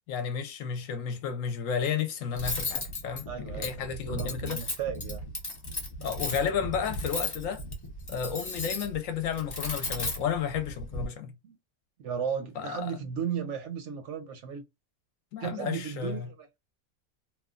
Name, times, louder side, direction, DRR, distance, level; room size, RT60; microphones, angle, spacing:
voice 1, 0.1-4.6 6.0-7.6 8.1-11.3 12.6-12.9 15.3-16.3, left 7 dB, 70° left, 0.9 m, -32 dB
Cutlery silverware, 2.3-11.1, left 2 dB, 35° left, 0.3 m, -35 dB
voice 2, 3.3-5.2 11.4-11.6 12.0-14.6 15.4-16.5, right 7 dB, 65° right, 0.8 m, -35 dB
3.0 x 2.2 x 2.3 m
omnidirectional pair, 1.5 m